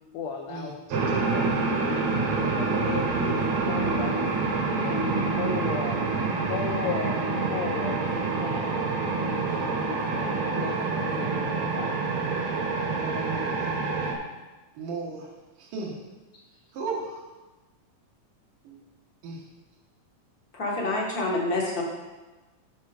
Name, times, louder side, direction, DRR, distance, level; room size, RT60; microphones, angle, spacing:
voice 1, 0.1-1.5 1.9-6.0 6.3-8.7 9.3-10.8 11.1-12.1, left 6 dB, 75° left, 1 dB, 1.6 m, -36 dB
sound 1, 0.9-14.1, right 4 dB, 65° right, 2.1 m, -27 dB
voice 2, 13.0-13.7 14.7-15.3 15.6-16.0 16.7-17.3 18.6-18.8 19.2-19.4, right 4 dB, 80° right, -4 dB, 2.9 m, -35 dB
voice 3, 20.5-21.8, left 2 dB, 45° left, -2 dB, 1.2 m, -27 dB
12.0 x 4.4 x 5.0 m, 1.2 s
omnidirectional pair, 3.7 m